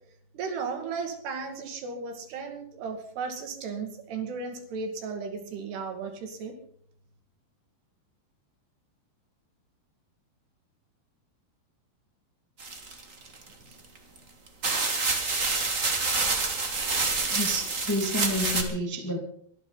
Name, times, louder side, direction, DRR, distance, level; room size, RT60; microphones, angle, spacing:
voice 1, 0.3-6.5, right 5 dB, 75° right, 5 dB, 4.3 m, -35 dB
sound 1, 12.6-13.5 14.2-14.3 14.6-18.6, right 3 dB, 40° right, 1.0 m, -27 dB
voice 2, 17.3-19.2, equal, 15° left, 3 dB, 0.6 m, -30 dB
23.5 x 13.5 x 4.0 m, 0.63 s
omnidirectional pair, 4.8 m